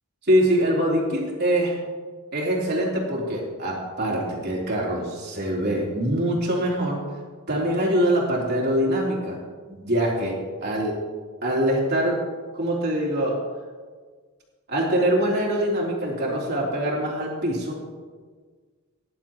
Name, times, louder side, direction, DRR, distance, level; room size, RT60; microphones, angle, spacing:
voice 1, 0.3-1.8 2.3-7.0 7.5-9.4 9.7-11.0 11.4-12.2 12.5-13.4 14.7-17.8, right 1 dB, 50° right, -3 dB, 3.4 m, -24 dB
18.5 x 11.0 x 3.0 m, 1.5 s
head